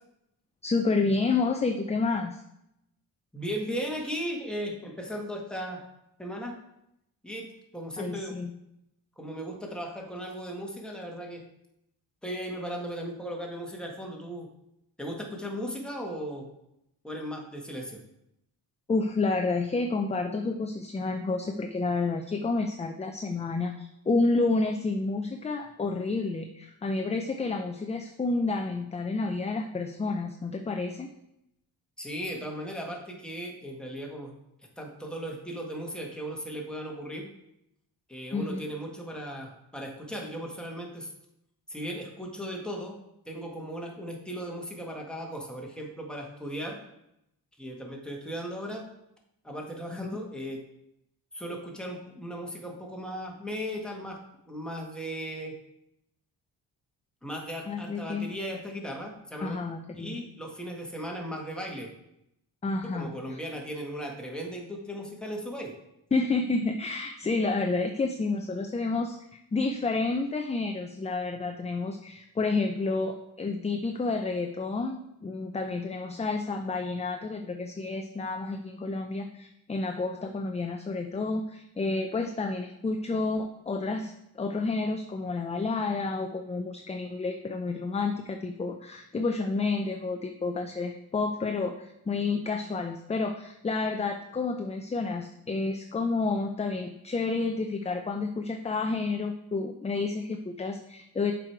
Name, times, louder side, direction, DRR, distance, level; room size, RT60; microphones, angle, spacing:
voice 1, 0.6-2.4 8.0-8.5 18.9-31.1 38.3-38.6 49.9-50.1 57.7-58.3 59.4-60.2 62.6-63.4 66.1-101.3, left 3 dB, 20° left, 5 dB, 0.5 m, -30 dB
voice 2, 3.3-5.9 6.2-6.6 7.2-7.5 7.7-8.4 9.2-11.4 12.2-14.5 15.0-16.5 17.0-18.0 32.0-34.3 34.8-37.3 38.1-41.1 41.7-43.0 43.2-46.8 47.6-48.9 49.4-50.6 51.3-54.2 54.5-55.5 57.2-59.6 60.0-61.9 62.8-65.7, equal, ahead, 0 dB, 1.6 m, -37 dB
7.2 x 4.8 x 4.6 m, 0.82 s
cardioid pair, 100°, 38 cm